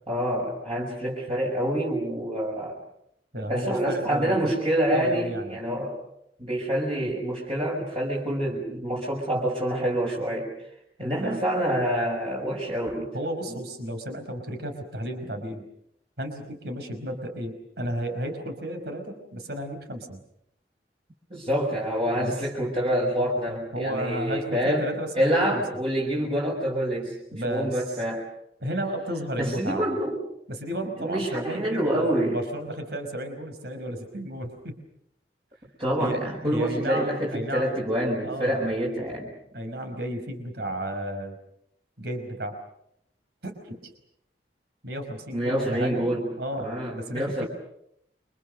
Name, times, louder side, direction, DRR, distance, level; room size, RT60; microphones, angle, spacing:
voice 1, 0.1-2.8 3.5-6.0 6.4-10.5 11.0-13.1 13.5-13.6 21.3-24.9 25.2-28.2 29.4-30.2 31.0-32.4 35.8-39.3 45.3-46.3 46.6-47.5, equal, 30° right, -4 dB, 6.1 m, -27 dB
voice 2, 3.3-4.6 4.9-5.6 11.0-11.4 13.1-15.6 16.2-20.2 22.2-22.3 23.7-25.6 27.3-28.0 28.6-29.9 30.5-34.8 36.0-37.8 38.2-38.7 39.5-41.4 42.0-42.6 43.4-43.9 44.8-46.1 46.4-47.5, right 1 dB, 65° right, 6 dB, 5.2 m, -33 dB
29.5 x 25.5 x 6.7 m, 0.75 s
head